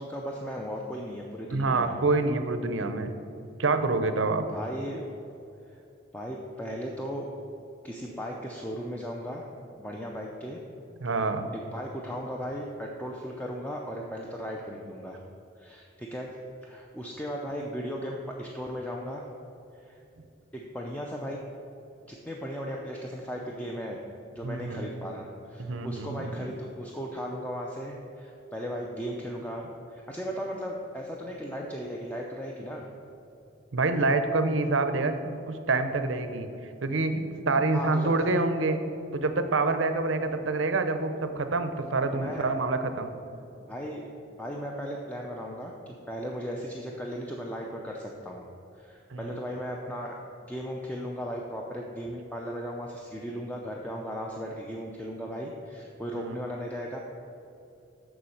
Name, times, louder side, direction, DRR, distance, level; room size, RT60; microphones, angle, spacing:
voice 1, 0.0-2.0 4.5-5.1 5.7-5.8 6.1-7.3 7.8-9.5 9.8-10.6 11.0-11.2 11.5-15.2 15.6-16.4 16.6-19.3 19.8-20.0 20.5-21.4 22.1-24.0 24.3-32.9 37.7-38.3 42.1-42.5 43.7-44.1 44.4-48.4 48.7-50.2 50.5-57.0, equal, 10° left, -1 dB, 0.5 m, -36 dB
voice 2, 1.5-3.1 3.6-4.4 11.0-11.5 24.4-24.9 25.6-26.5 33.7-36.5 36.8-38.8 39.1-43.1 49.1-49.4 56.1-56.4, right 3 dB, 85° right, 9 dB, 0.7 m, -27 dB
7.1 x 6.2 x 6.4 m, 2.7 s
head